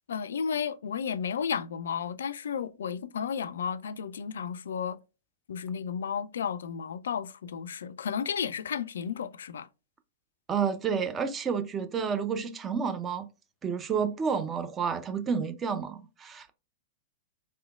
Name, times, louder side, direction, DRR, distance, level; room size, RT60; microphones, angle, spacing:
voice 1, 0.1-5.0 5.5-9.7, left 7 dB, 65° left, 0.3 m, -33 dB
voice 2, 10.5-13.3 13.6-16.5, right 6 dB, 20° right, 0.5 m, -30 dB
3.3 x 2.9 x 2.3 m
figure-of-eight pair, 100°, 0 cm